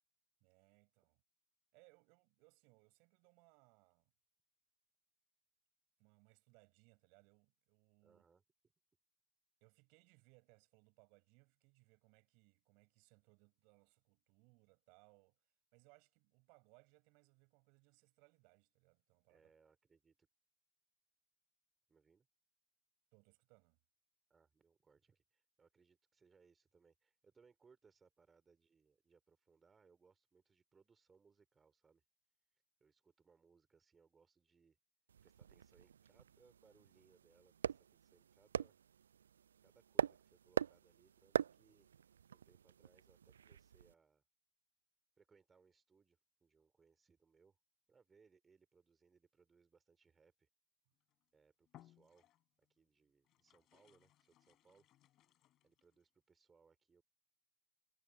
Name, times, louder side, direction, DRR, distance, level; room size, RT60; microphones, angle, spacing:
voice 1, 0.4-1.2 1.7-4.1 6.0-8.2 9.6-19.5 23.1-23.8, right 32 dB, 45° right, 6.2 m, -70 dB
voice 2, 8.0-8.4 19.3-20.3 21.9-22.3 24.3-32.0 32.5-34.8 35.2-38.8 39.6-41.9 42.3-44.2 45.2-47.6 47.9-50.5 51.3-52.3 52.6-54.9 55.6-57.0, right 5 dB, 15° right, 4.4 m, -71 dB
sound 1, 35.1-43.9, right 8 dB, 65° right, 0.4 m, -43 dB
sound 2, 51.0-51.2 51.7-52.7 53.2-56.0, left 14 dB, 35° left, 4.0 m, -67 dB
figure-of-eight pair, 90°, 0 cm